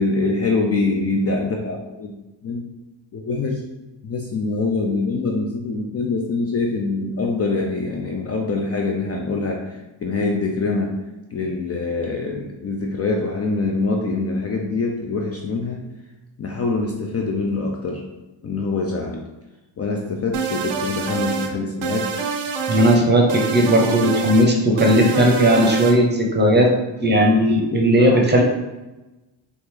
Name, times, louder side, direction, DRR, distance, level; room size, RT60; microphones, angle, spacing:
voice 1, 0.0-2.1 2.4-2.7 3.1-3.6 4.0-10.9 11.3-15.9 16.4-18.0 18.4-19.3 19.8-22.2 24.6-24.8 27.1-27.2 28.0-28.2, left 3 dB, 35° left, 0 dB, 0.4 m, -24 dB
sound 1, 20.3-21.5 21.8-23.0 23.3-24.5 24.8-26.0, right 5 dB, 80° right, 0.6 m, -26 dB
voice 2, 22.7-26.7 27.0-28.4, equal, 20° right, 1 dB, 0.7 m, -16 dB
3.0 x 2.5 x 3.6 m, 1.1 s
cardioid pair, 90°, 47 cm